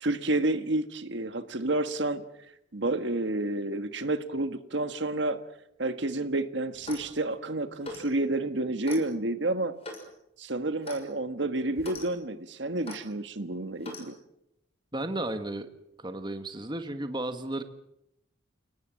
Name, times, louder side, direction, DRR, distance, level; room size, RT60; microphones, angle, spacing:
voice 1, 0.0-2.2 2.7-5.4 5.8-9.7 10.4-14.1, right 2 dB, 60° right, 9 dB, 1.5 m, -30 dB
Clock, 6.7-7.1 7.8-8.1 8.8-9.0 9.8-10.1 10.8-11.0 11.8-12.1 12.8-13.0 13.8-14.1, left 2 dB, 30° left, 6.2 m, -41 dB
voice 2, 14.9-15.7 16.0-17.6, right 1 dB, 20° right, 8 dB, 1.6 m, -33 dB
30.0 x 18.5 x 7.7 m, 0.81 s
head